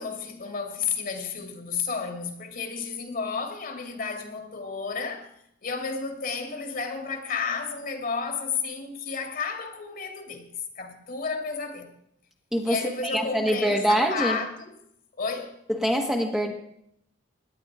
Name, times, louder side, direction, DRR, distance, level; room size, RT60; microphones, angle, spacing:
voice 1, 0.0-5.3 5.6-11.9 12.6-14.8 15.2-15.5, left 5 dB, 50° left, 2.3 m, -32 dB
voice 2, 12.5-14.4 15.7-16.5, equal, 5° right, 1.4 m, -24 dB
18.0 x 11.0 x 4.9 m
head